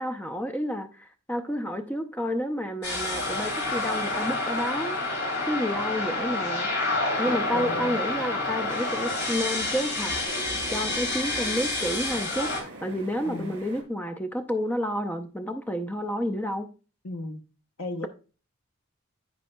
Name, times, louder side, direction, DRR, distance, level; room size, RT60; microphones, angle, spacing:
voice 1, 0.0-5.0 5.4-6.7 7.2-10.1 10.7-16.7, equal, 10° left, 0.5 m, -30 dB
sound 1, 2.8-12.6, left 2 dB, 55° left, 2.7 m, -29 dB
sound 2, 7.1-13.8, right 2 dB, 65° right, 4.0 m, -43 dB
voice 2, 7.5-8.0 13.2-13.5 17.0-17.4 17.8-18.1, left 2 dB, 80° left, 1.0 m, -35 dB
14.5 x 5.4 x 2.2 m
head